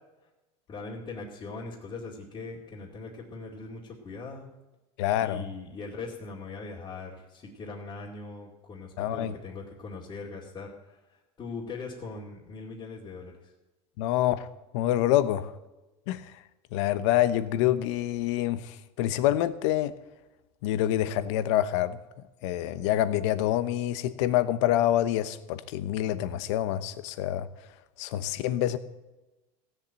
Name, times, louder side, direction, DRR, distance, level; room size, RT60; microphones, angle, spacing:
voice 1, 0.7-4.5 5.2-13.5, left 3 dB, 30° left, -5 dB, 2.5 m, -41 dB
voice 2, 5.0-5.4 9.0-9.4 14.0-14.5 14.7-15.5 16.1-16.3 16.7-19.9 20.6-22.0 22.4-27.5 28.0-28.8, left 13 dB, 75° left, 14 dB, 1.1 m, -26 dB
16.5 x 7.3 x 8.9 m, 1.1 s
supercardioid pair, 140°, 15 cm